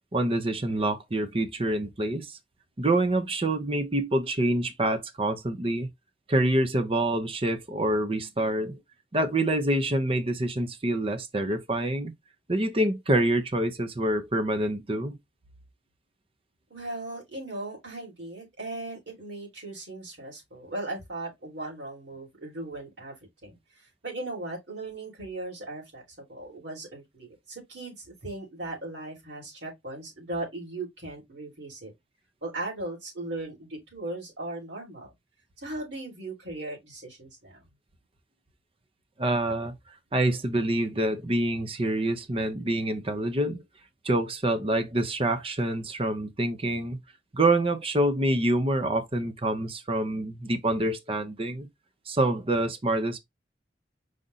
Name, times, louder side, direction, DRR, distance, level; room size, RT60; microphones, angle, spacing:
voice 1, 0.1-2.4 2.8-5.9 6.3-8.8 9.1-12.1 12.5-15.2 39.2-39.7 40.1-43.6 44.0-47.0 47.3-51.7 52.1-53.2, right 1 dB, 30° right, 0.7 m, -26 dB
voice 2, 16.7-23.1 23.4-31.9 32.4-35.1 35.6-37.7, right 2 dB, 90° right, 3.3 m, -38 dB
5.0 x 2.5 x 3.9 m
head